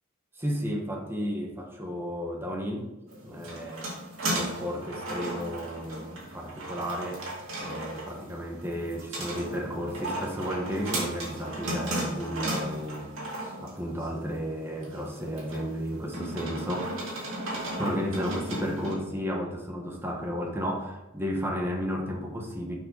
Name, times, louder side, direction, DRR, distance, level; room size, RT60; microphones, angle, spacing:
voice 1, 0.4-2.9 3.2-3.9 4.3-7.2 7.6-13.1 13.6-16.9 17.8-22.8, equal, 10° right, 0 dB, 1.2 m, -33 dB
sound 1, 3.1-18.9, right 1 dB, 85° right, 2.2 m, -35 dB
7.0 x 5.4 x 4.0 m, 1.0 s
head